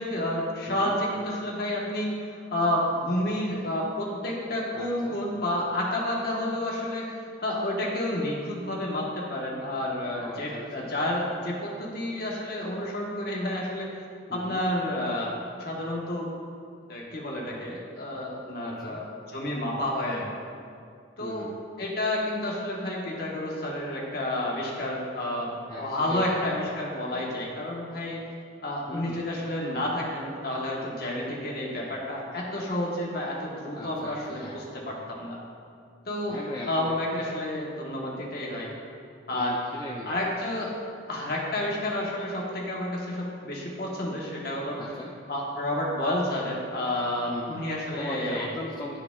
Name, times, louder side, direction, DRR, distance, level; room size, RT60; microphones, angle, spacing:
voice 1, 0.0-13.9 14.3-16.3 16.9-20.4 21.2-21.5 21.8-28.2 28.6-35.4 36.1-36.4 36.7-38.7 39.3-39.6 40.1-40.7 41.1-44.8 45.3-48.5, left 1 dB, 55° left, -3 dB, 1.2 m, -30 dB
voice 2, 0.7-1.0 4.7-5.2 10.2-10.9 14.3-14.6 18.6-19.0 21.2-21.6 25.7-26.4 28.9-29.2 33.7-34.6 36.3-37.0 39.3-40.2 44.8-45.1 47.3-49.0, left 2 dB, 20° left, -3 dB, 0.4 m, -39 dB
11.5 x 4.3 x 2.3 m, 2.3 s
head